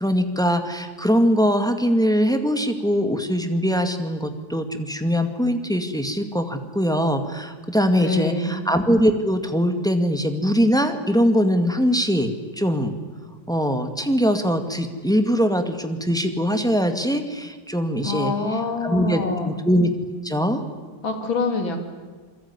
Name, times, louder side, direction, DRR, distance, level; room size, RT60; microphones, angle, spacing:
voice 1, 0.0-12.9 13.5-18.3 18.8-19.9 20.2-20.6, equal, ahead, 6 dB, 1.9 m, -22 dB
voice 2, 7.8-8.6 18.0-19.5 21.0-21.8, left 3 dB, 75° left, 5 dB, 3.7 m, -26 dB
28.0 x 22.0 x 9.8 m, 1.5 s
omnidirectional pair, 2.1 m